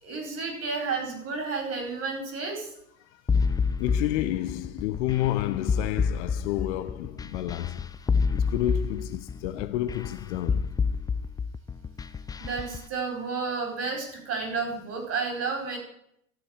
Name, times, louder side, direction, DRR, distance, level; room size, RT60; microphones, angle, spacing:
voice 1, 0.0-2.7 12.4-15.8, right 4 dB, 35° right, 4.7 m, -31 dB
sound 1, 3.3-12.8, left 5 dB, 10° left, 0.4 m, -28 dB
voice 2, 3.8-7.9 8.3-10.7, left 14 dB, 60° left, 0.9 m, -30 dB
12.5 x 7.3 x 6.5 m
hypercardioid pair, 85°, 40 cm